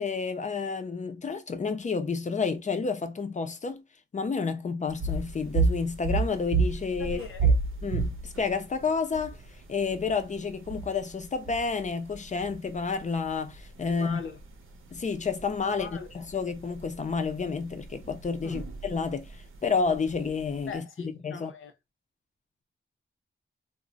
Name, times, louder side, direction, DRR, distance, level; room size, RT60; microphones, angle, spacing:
voice 1, 0.0-3.8 4.1-7.5 7.8-9.4 9.7-14.2 14.9-19.4 19.6-21.5, left 5 dB, 35° left, 0.4 m, -30 dB
sound 1, 4.9-20.8, right 4 dB, 80° right, 0.7 m, -33 dB
voice 2, 7.0-7.5 13.8-14.4 15.6-16.1 18.4-18.6 20.7-21.7, left 5 dB, 75° left, 0.6 m, -40 dB
2.4 x 2.0 x 3.8 m
wide cardioid pair, 170°, 21 cm